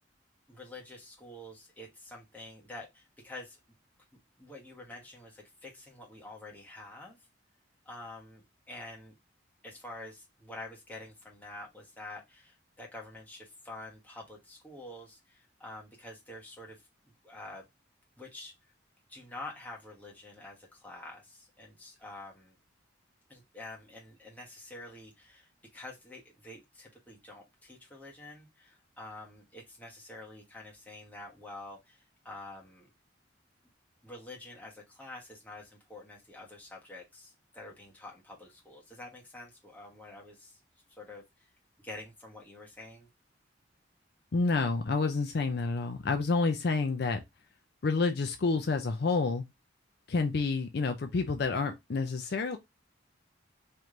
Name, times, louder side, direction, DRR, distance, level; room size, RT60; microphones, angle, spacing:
voice 1, 0.5-3.6 4.4-7.2 7.8-9.1 9.6-16.8 17.2-17.7 18.2-18.5 19.1-22.6 23.3-32.9 34.0-40.6 41.0-41.5 41.8-43.1, left 2 dB, 10° left, 1.1 m, -47 dB
voice 2, 44.3-47.2 47.8-49.4 50.1-52.6, left 3 dB, 55° left, 0.5 m, -29 dB
3.3 x 3.0 x 3.7 m
head